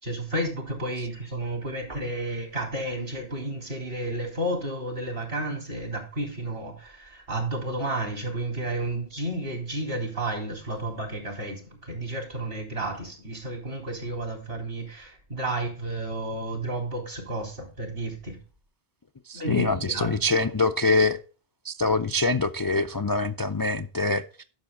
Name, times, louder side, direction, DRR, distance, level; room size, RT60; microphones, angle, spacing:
voice 1, 0.0-18.4 19.3-20.4, right 1 dB, 65° right, 3.8 m, -32 dB
voice 2, 19.3-21.2 21.6-24.4, left 2 dB, 35° left, 0.3 m, -24 dB
11.5 x 6.7 x 3.7 m
omnidirectional pair, 1.0 m